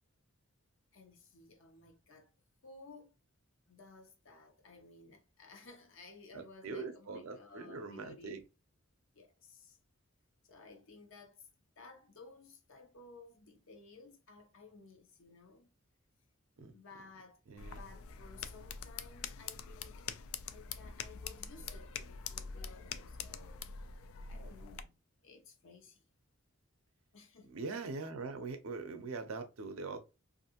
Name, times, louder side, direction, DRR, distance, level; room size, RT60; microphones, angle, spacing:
voice 1, 0.9-2.3 2.6-3.1 3.7-8.3 9.1-9.8 10.4-11.5 11.8-15.7 16.7-23.9 24.3-26.0 27.1-27.6, left 3 dB, 65° left, 0.7 m, -56 dB
voice 2, 6.3-8.4 16.6-16.7 17.5-17.8 27.5-30.0, right 4 dB, 75° right, 0.5 m, -42 dB
sound 1, 17.6-24.8, left 6 dB, 80° left, 0.3 m, -45 dB
2.5 x 2.5 x 2.8 m
head